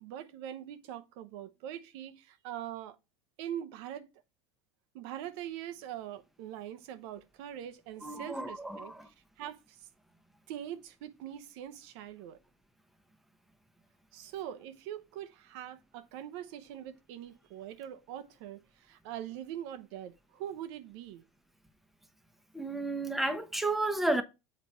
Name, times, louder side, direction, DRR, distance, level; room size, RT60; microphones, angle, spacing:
voice 1, 0.0-3.0 3.4-4.1 4.9-8.9 9.4-9.8 10.5-12.4 14.1-21.2, right 11 dB, 70° right, 0.8 m, -43 dB
voice 2, 8.0-9.1 22.5-24.2, right 2 dB, ahead, 1.0 m, -32 dB
7.5 x 4.0 x 4.4 m
supercardioid pair, 105°, 15 cm